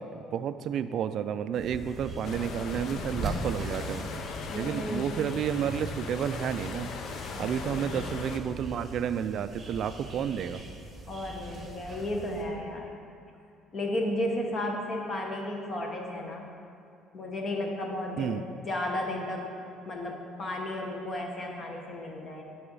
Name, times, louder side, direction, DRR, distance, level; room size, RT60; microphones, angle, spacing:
voice 1, 0.0-4.0 4.5-6.9 7.4-10.6 18.2-18.4, right 8 dB, 45° right, 12 dB, 0.3 m, -31 dB
sound 1, 1.5-12.4, right 2 dB, 20° right, 1.2 m, -41 dB
sound 2, 2.2-8.4, left 5 dB, 50° left, 0.5 m, -39 dB
voice 2, 4.5-5.1 7.3-7.8 11.1-12.9 13.7-16.5 17.1-18.3 18.6-19.5 19.9-22.4, left 1 dB, 30° left, 1 dB, 1.0 m, -33 dB
10.0 x 4.8 x 5.4 m, 2.5 s
cardioid pair, 165°, 0 cm